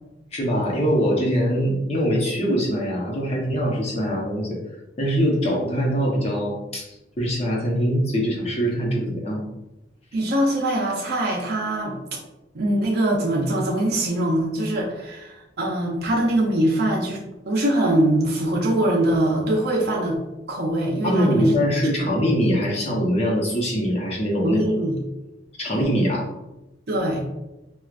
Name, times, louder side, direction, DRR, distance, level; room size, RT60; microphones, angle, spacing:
voice 1, 0.3-4.6 5.0-9.4 21.0-24.6 25.6-26.2, equal, 35° left, -2 dB, 0.8 m, -23 dB
voice 2, 10.1-12.0 12.5-17.2 17.5-20.2 20.5-21.6 22.0-22.1 24.4-25.0 26.9-27.2, right 1 dB, 60° right, -2 dB, 0.6 m, -22 dB
4.5 x 2.3 x 2.4 m, 0.95 s
head